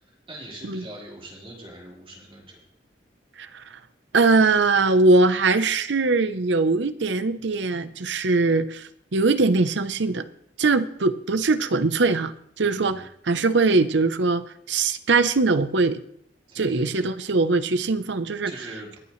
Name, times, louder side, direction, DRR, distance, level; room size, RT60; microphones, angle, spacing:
voice 1, 0.1-2.6 12.6-13.1 16.5-16.9 18.4-19.0, right 1 dB, 30° right, -4 dB, 4.3 m, -42 dB
voice 2, 4.1-10.3 10.6-12.3 12.6-16.0 16.6-18.5, right 3 dB, 70° right, 12 dB, 0.8 m, -21 dB
23.5 x 8.5 x 3.2 m, 0.70 s
head